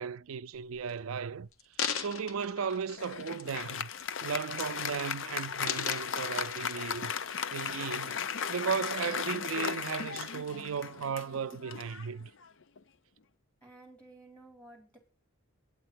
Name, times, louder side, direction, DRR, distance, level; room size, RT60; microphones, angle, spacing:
voice 1, 0.0-1.5 1.9-3.9 4.2-7.1 7.5-12.3, right 6 dB, 85° right, 0.5 m, -36 dB
sound 1, 0.5-0.9 1.5-3.6 4.0-4.2 4.5-5.1 5.4-7.1 7.7-7.8, left 7 dB, 85° left, 0.9 m, -38 dB
Applause, 3.0-12.8, left 7 dB, 65° left, 0.6 m, -36 dB
voice 2, 13.6-15.0, right 2 dB, 5° left, 3.9 m, -54 dB
9.2 x 7.7 x 6.2 m
head